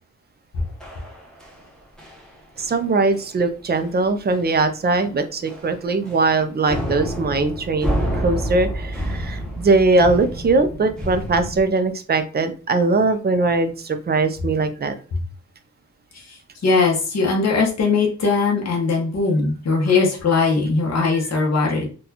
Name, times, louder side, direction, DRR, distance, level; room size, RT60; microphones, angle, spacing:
sound 1, 0.8-1.7 2.0-2.3 2.6-2.8 3.1-3.3 3.7-3.8 4.3-4.6 4.9-5.0 5.5-6.3 6.7-11.6, equal, ahead, 0.8 m, -29 dB
voice 1, 2.6-15.0, right 3 dB, 35° right, 8 dB, 0.4 m, -20 dB
voice 2, 16.1-21.9, left 4 dB, 55° left, -1 dB, 0.8 m, -20 dB
4.0 x 2.3 x 2.8 m, 0.37 s
wide cardioid pair, 170°, 31 cm